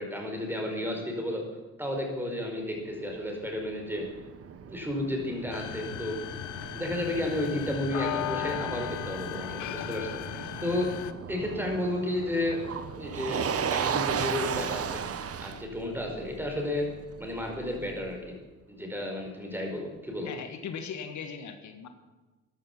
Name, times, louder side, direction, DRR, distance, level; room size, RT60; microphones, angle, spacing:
voice 1, 0.0-1.4 1.8-4.1 4.7-6.2 6.7-10.9 11.3-12.6 13.0-15.0 15.4-16.9 17.2-18.3 18.7-20.3, left 1 dB, 5° right, 2 dB, 4.7 m, -32 dB
Motor vehicle (road), 3.1-18.2, right 7 dB, 50° right, 1.1 m, -36 dB
sound 1, 5.5-11.1, left 14 dB, 90° left, 0.8 m, -36 dB
voice 2, 20.2-21.9, left 6 dB, 70° left, 7 dB, 1.7 m, -39 dB
14.0 x 10.5 x 7.3 m, 1.2 s
cardioid pair, 90°, 30 cm